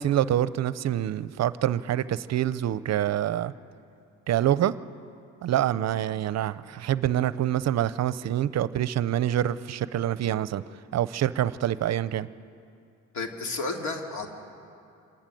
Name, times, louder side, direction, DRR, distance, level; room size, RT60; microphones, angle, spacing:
voice 1, 0.0-3.5 4.3-4.7 5.4-10.6 10.9-12.3, right 11 dB, 60° right, 16 dB, 0.6 m, -26 dB
voice 2, 13.1-14.3, left 3 dB, 70° left, 3 dB, 2.4 m, -32 dB
26.5 x 11.5 x 9.2 m, 2.5 s
cardioid pair, 90°, 30 cm